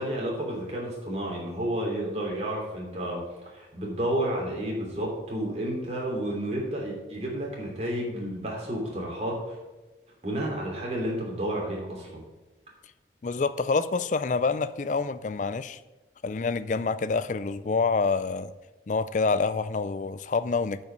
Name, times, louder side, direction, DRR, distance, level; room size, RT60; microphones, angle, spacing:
voice 1, 0.0-9.6 10.2-12.2, right 1 dB, 35° right, 2.9 m, -31 dB
voice 2, 13.2-15.8 16.2-18.5 18.9-20.8, left 4 dB, 40° left, 0.4 m, -27 dB
8.9 x 5.6 x 6.7 m
head